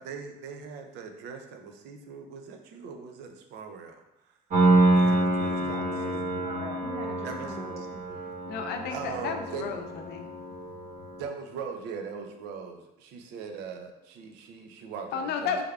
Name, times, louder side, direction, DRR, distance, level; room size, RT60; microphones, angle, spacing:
voice 1, 0.0-4.0 4.9-5.8 7.2-7.9 8.9-9.7 11.2-15.6, right 6 dB, 85° right, 4 dB, 0.5 m, -40 dB
Piano, 4.5-11.2, right 2 dB, 55° right, 1.2 m, -27 dB
voice 2, 5.4-8.2, right 2 dB, 40° right, 2 dB, 0.6 m, -42 dB
voice 3, 8.5-10.3 15.1-15.6, left 6 dB, 75° left, 5 dB, 0.5 m, -32 dB
3.4 x 3.4 x 2.3 m, 0.93 s
cardioid pair, 110°, 17 cm